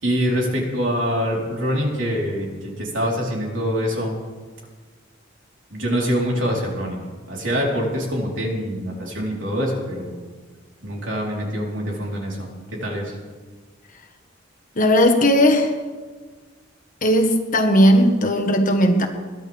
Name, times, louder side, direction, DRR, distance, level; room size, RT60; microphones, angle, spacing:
voice 1, 0.0-4.1 5.7-10.2 10.8-13.2, equal, 70° right, 3.9 m, -25 dB
voice 2, 14.7-15.7 17.0-19.1, equal, 45° left, 1.5 m, -16 dB
22.0 x 13.5 x 3.5 m
head